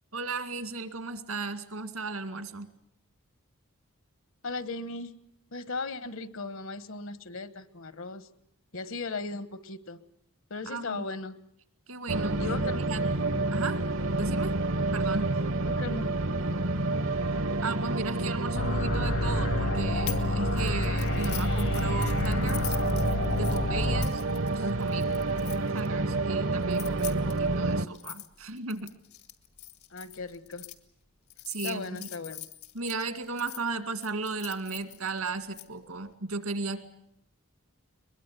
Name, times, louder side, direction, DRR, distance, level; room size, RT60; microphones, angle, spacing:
voice 1, 0.1-2.7 10.7-11.0 11.9-12.4 12.9-13.0 13.5-13.8 14.2-14.6 14.9-15.3 17.6-22.8 23.3-24.2 24.5-25.1 25.7-28.9 31.5-32.1 32.7-36.8, right 3 dB, 80° right, 10 dB, 2.1 m, -35 dB
voice 2, 4.4-5.1 5.5-8.3 8.7-10.0 10.5-11.4 12.4-12.9 13.3-13.4 15.6-16.1 29.9-30.7 31.6-32.5, left 3 dB, 65° left, 14 dB, 1.2 m, -37 dB
sound 1, 12.1-27.9, right 2 dB, 65° right, 0.9 m, -29 dB
sound 2, 18.5-24.1, left 2 dB, 50° left, 0.9 m, -29 dB
sound 3, 20.1-20.3 20.6-25.9 26.6-30.7 31.3-33.6 34.0-35.6, left 15 dB, 85° left, 1.9 m, -43 dB
22.5 x 22.0 x 8.3 m, 0.74 s
head